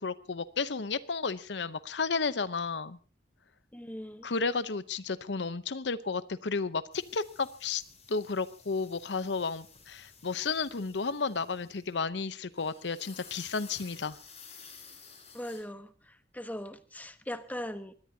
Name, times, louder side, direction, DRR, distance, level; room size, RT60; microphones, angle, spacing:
voice 1, 0.0-3.0 4.2-7.8 8.1-14.2, left 4 dB, 75° left, 0.8 m, -32 dB
voice 2, 3.7-4.3 15.3-15.9 16.3-17.9, equal, 10° left, 1.2 m, -39 dB
sound 1, 6.9-12.2 12.5-15.6, left 5 dB, 40° left, 7.2 m, -53 dB
23.5 x 18.0 x 2.8 m
head